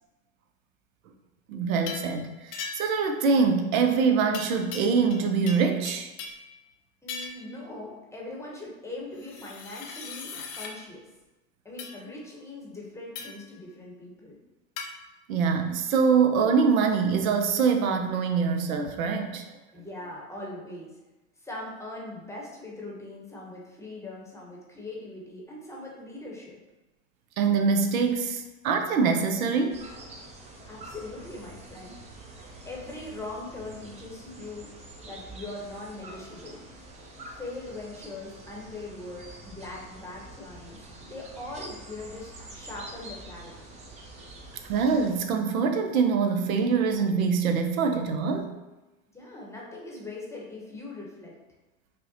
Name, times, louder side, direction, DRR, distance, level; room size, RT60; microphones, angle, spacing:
voice 1, 1.5-6.1 15.3-19.4 27.4-29.8 44.6-48.5, right 5 dB, 75° right, 5 dB, 0.6 m, -24 dB
sound 1, 1.9-2.1 2.5-3.0 4.3-5.2 5.5-6.5 7.1-7.5 9.2-10.7 11.8-12.0 13.1-13.5 14.8-14.9, left 5 dB, 40° left, 0.6 m, -39 dB
voice 2, 7.0-11.1 11.6-14.4 19.7-21.0 21.4-26.6 30.7-32.0 32.6-34.7 35.0-36.6 37.4-43.7 49.1-51.4, left 2 dB, 5° left, -3 dB, 0.8 m, -41 dB
sound 2, 29.7-45.2, right 2 dB, 15° right, 0.4 m, -46 dB
5.3 x 2.1 x 2.6 m, 1.1 s
hypercardioid pair, 95°, 42 cm